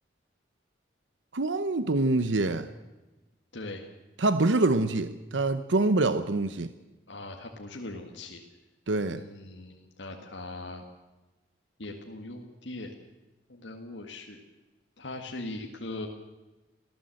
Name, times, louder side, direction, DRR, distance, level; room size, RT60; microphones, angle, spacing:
voice 1, 1.3-2.7 4.2-6.7 8.9-9.2, right 2 dB, 80° right, 12 dB, 0.8 m, -25 dB
voice 2, 3.5-3.9 7.1-8.4 9.1-10.8 11.8-13.0 13.5-14.4 15.0-16.1, left 2 dB, 75° left, 1 dB, 1.9 m, -40 dB
22.5 x 15.0 x 7.8 m, 1.1 s
head